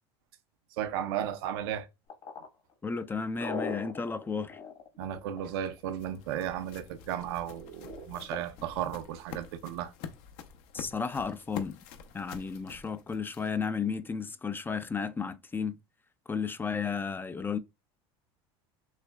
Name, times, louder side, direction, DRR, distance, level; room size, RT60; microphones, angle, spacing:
voice 1, 0.8-1.9 5.0-9.9, right 10 dB, 80° right, 0.6 m, -34 dB
sound 1, 2.1-5.8 7.9-8.4, left 5 dB, 50° left, 1.4 m, -39 dB
voice 2, 2.8-4.6 10.7-11.8 12.1-15.8 16.3-17.6, left 5 dB, 15° left, 0.3 m, -33 dB
sound 2, 5.2-13.7, left 7 dB, 65° left, 0.7 m, -47 dB
6.3 x 2.1 x 2.3 m
supercardioid pair, 105°, 13 cm